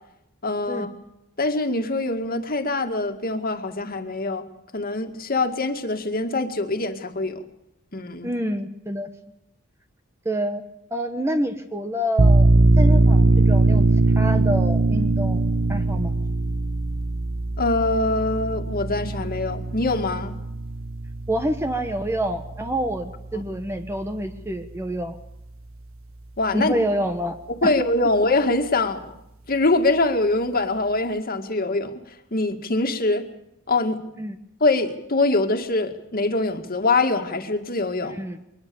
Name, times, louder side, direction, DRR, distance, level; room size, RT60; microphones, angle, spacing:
voice 1, 0.4-0.9 1.4-4.4 4.7-7.4 7.9-8.3 17.6-20.3 26.4-26.7 27.6-29.1 29.5-31.9 32.3-33.3 33.7-34.0 34.6-38.2, left 2 dB, 45° left, 6 dB, 2.2 m, -23 dB
voice 2, 8.2-9.1 10.2-10.6 10.9-12.5 12.8-13.9 14.1-16.2 21.3-25.2 26.5-27.4 27.6-27.7 34.2-34.4 38.0-38.4, right 1 dB, 15° right, 6 dB, 1.2 m, -27 dB
sound 1, 12.2-23.5, right 2 dB, 80° right, 1.4 m, -21 dB
23.0 x 20.5 x 7.1 m, 0.83 s
head